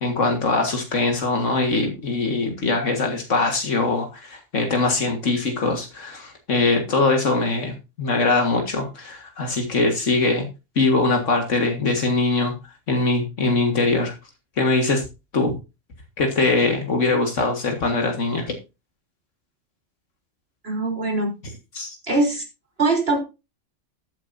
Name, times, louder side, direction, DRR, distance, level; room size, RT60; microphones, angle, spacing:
voice 1, 0.0-10.5 10.8-12.5 12.9-14.1 14.6-15.0 15.3-15.5 16.2-18.5 21.7-22.0, left 3 dB, 80° left, 4 dB, 2.1 m, -22 dB
voice 2, 20.6-21.3 22.1-22.4 22.8-23.2, right 2 dB, 55° right, 2 dB, 3.9 m, -21 dB
13.0 x 9.4 x 2.7 m, 0.27 s
omnidirectional pair, 1.3 m